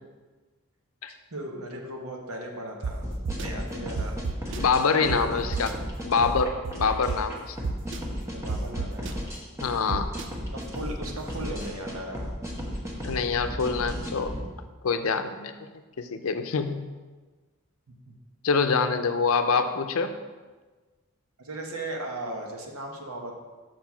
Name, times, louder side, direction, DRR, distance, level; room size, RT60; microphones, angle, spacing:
voice 1, 1.3-3.1 3.4-5.3 8.3-9.1 10.5-12.2 18.1-18.2 21.4-23.4, right 1 dB, 90° right, 1 dB, 1.2 m, -37 dB
sound 1, 2.8-2.9 3.2-3.5 4.0-4.6 5.1-5.2 5.5-5.7 6.2-7.2 7.6-8.0 8.5-9.1 9.9-10.2, right 5 dB, 55° right, 0.4 m, -30 dB
sound 2, 3.0-14.4, equal, 15° right, 1.0 m, -35 dB
voice 2, 4.6-5.7 6.0-7.6 9.6-10.1 13.0-14.4 14.8-15.5 16.0-16.9 18.4-20.1, left 5 dB, 80° left, 8 dB, 0.6 m, -25 dB
6.1 x 4.8 x 5.7 m, 1.3 s
head